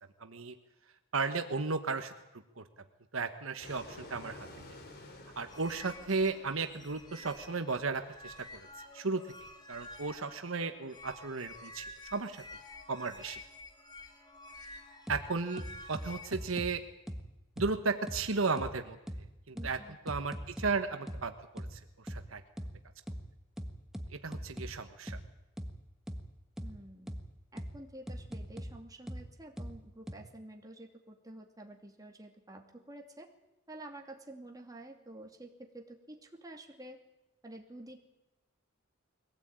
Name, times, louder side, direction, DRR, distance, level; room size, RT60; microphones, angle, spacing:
voice 1, 0.2-0.5 1.1-2.6 3.1-4.5 5.4-8.7 8.9-9.3 9.7-12.4 12.9-13.4 15.1-15.6 15.9-16.8 17.6-19.0 19.5-19.8 20.0-22.4 24.1-25.2, right 4 dB, 75° right, 8 dB, 1.3 m, -35 dB
Fixed-wing aircraft airplane, 3.6-8.8, left 2 dB, 50° left, 3.0 m, -52 dB
sound 1, 5.5-16.5, left 2 dB, 20° left, 2.8 m, -50 dB
sound 2, 15.1-15.2 15.6-16.7 17.1-17.2 17.6-17.7 18.1-18.2 18.6-18.7 19.1-19.2 19.6-19.7 20.1-20.7 21.1-21.2 21.6-21.7 22.1-22.2 22.6-22.7 23.1-23.2 23.6-24.7 25.1-25.2 25.6-25.7 26.1-26.2 26.6-26.7 27.1-27.2 27.6-27.7 28.1-28.7 29.1-29.2 29.6-29.7 30.1-30.2, equal, ahead, 1.5 m, -39 dB
voice 2, 19.5-20.0 26.6-27.2 27.5-33.3 33.7-37.0 37.4-38.1, right 1 dB, 20° right, 1 dB, 2.6 m, -50 dB
22.5 x 17.0 x 8.9 m, 0.97 s
head